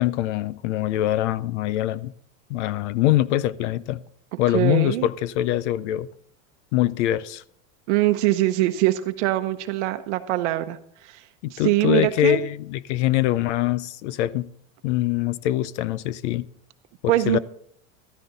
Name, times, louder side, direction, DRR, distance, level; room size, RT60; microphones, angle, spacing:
voice 1, 0.0-2.1 2.5-4.0 4.4-6.1 6.7-7.4 11.4-14.5 14.8-16.5 17.0-17.4, left 13 dB, 60° left, 0.6 m, -23 dB
voice 2, 4.3-5.1 7.9-10.8 11.0-11.2 11.5-12.4 17.1-17.4, right 16 dB, 60° right, 0.9 m, -23 dB
14.0 x 13.0 x 4.0 m
supercardioid pair, 165°, 40 cm